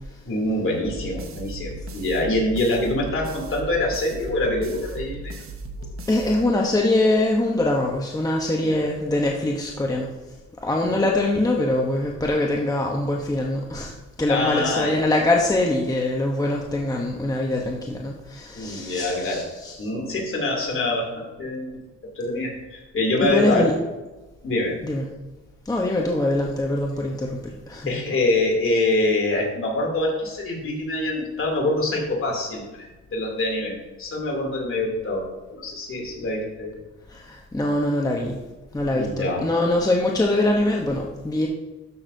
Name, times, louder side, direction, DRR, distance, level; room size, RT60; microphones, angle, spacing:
voice 1, 0.2-5.4 5.8-5.9 8.6-8.8 10.8-11.1 14.3-15.0 18.5-19.4 19.8-21.8 22.1-23.7 24.4-24.8 27.9-35.2 35.5-36.7 38.9-39.4, left 2 dB, 45° left, -1 dB, 2.9 m, -25 dB
sound 1, 0.8-7.0, right 2 dB, 45° right, 1.2 m, -36 dB
voice 2, 6.1-10.1 10.6-13.9 14.2-19.9 23.2-23.8 24.8-25.1 25.6-27.9 37.1-38.4 38.7-41.5, left 1 dB, 10° left, 0 dB, 0.9 m, -23 dB
12.5 x 6.2 x 2.7 m, 1.1 s
cardioid pair, 90°, 30 cm